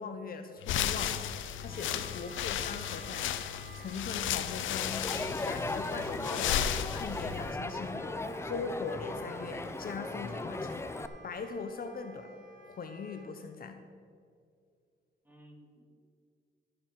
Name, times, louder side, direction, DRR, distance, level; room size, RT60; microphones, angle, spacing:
voice 1, 0.0-3.3 3.8-5.0 5.4-6.6 6.9-10.9 11.2-12.3 12.7-13.8, left 5 dB, 50° left, 7 dB, 0.9 m, -40 dB
sound 1, 0.6-7.5, left 10 dB, 80° left, 0.6 m, -34 dB
Wind instrument woodwind instrument, 1.5-13.3, right 2 dB, 70° right, 2.4 m, -54 dB
voice 2, 1.7-2.1 5.0-5.8 15.3-15.8, equal, 10° right, 2 dB, 2.2 m, -54 dB
Crowd, 4.8-11.1, left 2 dB, 15° left, 0.6 m, -37 dB
13.5 x 6.8 x 5.8 m, 2.3 s
cardioid pair, 90°, 20 cm